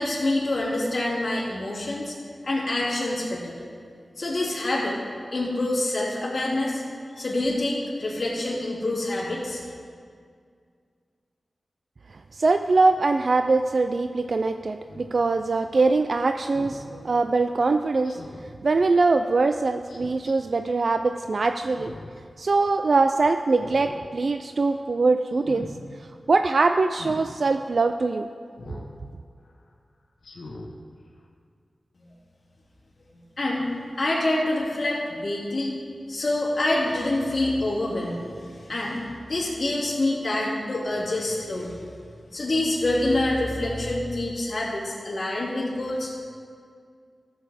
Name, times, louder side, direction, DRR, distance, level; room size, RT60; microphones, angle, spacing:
voice 1, 0.0-2.1 2.4-3.5 4.2-5.0 5.3-6.8 7.2-9.6 32.1-32.2 33.1-33.6 34.0-35.7 36.1-41.8 42.3-46.1, left 1 dB, 50° left, -6 dB, 2.6 m, -26 dB
voice 2, 12.3-18.2 18.6-21.9 22.4-25.7 26.3-28.3, right 3 dB, 60° right, 8 dB, 0.3 m, -22 dB
Speech synthesizer, 14.9-15.1 16.5-16.8 18.0-18.5 19.9-20.3 21.6-22.2 22.6-22.7 23.5-24.0 24.4-24.7 25.3-25.7 26.9-27.2 28.6-28.9 29.4-29.5 30.2-30.7 31.2-31.3, left 2 dB, 75° left, 1.3 m, -41 dB
14.0 x 7.1 x 4.9 m, 2.2 s
wide cardioid pair, 75°, 0 cm